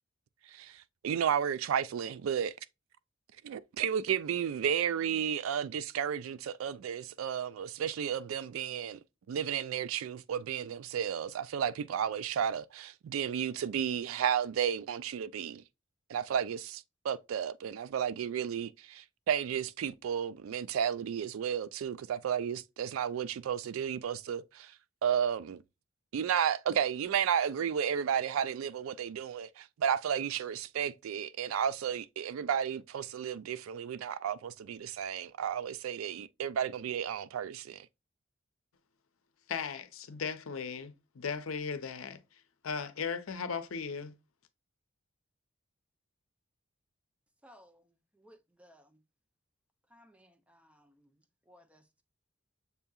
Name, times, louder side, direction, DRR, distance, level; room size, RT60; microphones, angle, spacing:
voice 1, 0.5-2.5 3.4-9.0 9.3-15.6 16.1-24.7 25.0-25.6 26.1-37.9, right 8 dB, 80° right, 0.3 m, -33 dB
voice 2, 39.5-44.2, left 6 dB, 85° left, 0.6 m, -37 dB
voice 3, 47.4-49.0 49.9-52.0, equal, 5° right, 0.5 m, -61 dB
6.7 x 2.7 x 2.3 m
head